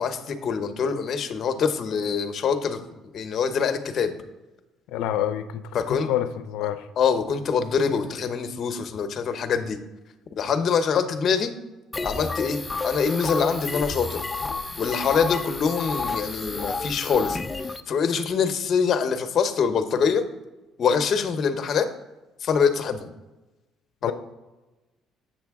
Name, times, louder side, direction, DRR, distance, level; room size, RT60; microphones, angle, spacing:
voice 1, 0.0-2.8 3.1-4.1 5.7-6.1 7.0-9.8 10.4-11.5 12.0-14.2 14.8-17.4 17.9-20.2 20.8-21.9 22.4-23.1 24.0-24.1, left 6 dB, 45° left, 9 dB, 0.8 m, -24 dB
voice 2, 4.9-6.9 24.0-24.1, left 11 dB, 85° left, 10 dB, 0.4 m, -28 dB
sound 1, 11.9-17.8, left 3 dB, 15° left, 0.4 m, -31 dB
7.5 x 7.2 x 3.5 m, 1.1 s
cardioid pair, 135°, 0 cm